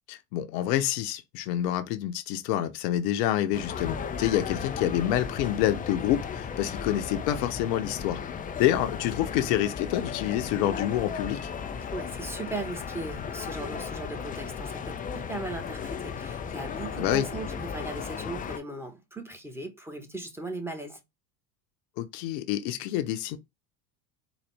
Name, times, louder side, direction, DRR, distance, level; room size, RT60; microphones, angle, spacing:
voice 1, 0.1-8.2 8.6-11.5 17.0-17.3 22.0-23.4, left 12 dB, 70° left, 0.8 m, -27 dB
sound 1, 3.5-18.6, left 6 dB, 20° left, 0.4 m, -35 dB
voice 2, 11.9-21.0, right 2 dB, 5° right, 1.3 m, -38 dB
4.0 x 2.5 x 3.4 m
hypercardioid pair, 80°, 50 cm